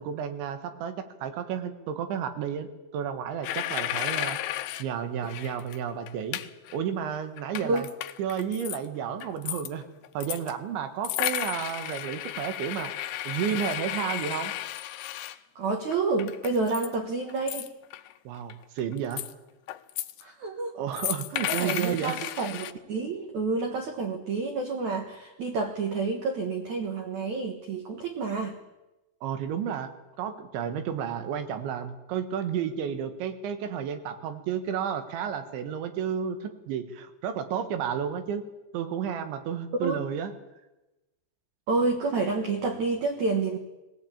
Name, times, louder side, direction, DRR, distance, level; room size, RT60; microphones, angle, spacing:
voice 1, 0.0-4.4 4.8-6.4 6.7-7.9 8.2-9.9 10.1-12.9 13.3-14.5 18.3-19.3 20.8-22.2 29.2-29.9 30.2-38.4 38.7-40.3, right 8 dB, 85° right, 8 dB, 3.9 m, -32 dB
sound 1, 3.4-4.9 5.3-5.8 6.1-6.8 7.1-8.8 9.2-10.5 11.0-15.4 15.9-17.0 17.3-18.1 18.5-19.3 19.7-20.2 20.9-22.7, left 13 dB, 75° left, 2.6 m, -33 dB
voice 2, 15.6-17.7 20.2-20.7 21.5-28.6 39.8-40.0 41.7-43.6, right 3 dB, 55° right, 3 dB, 2.2 m, -29 dB
20.0 x 17.5 x 8.7 m, 1.0 s
omnidirectional pair, 5.2 m